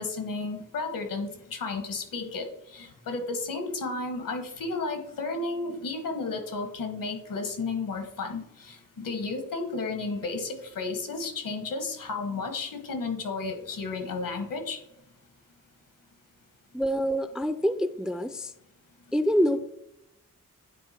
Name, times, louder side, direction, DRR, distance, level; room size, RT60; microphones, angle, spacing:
voice 1, 0.0-14.8, left 3 dB, 80° left, 6 dB, 1.5 m, -33 dB
voice 2, 16.7-18.5 19.1-19.6, equal, ahead, 11 dB, 0.3 m, -26 dB
9.2 x 3.4 x 4.3 m, 0.83 s
wide cardioid pair, 95°, 33 cm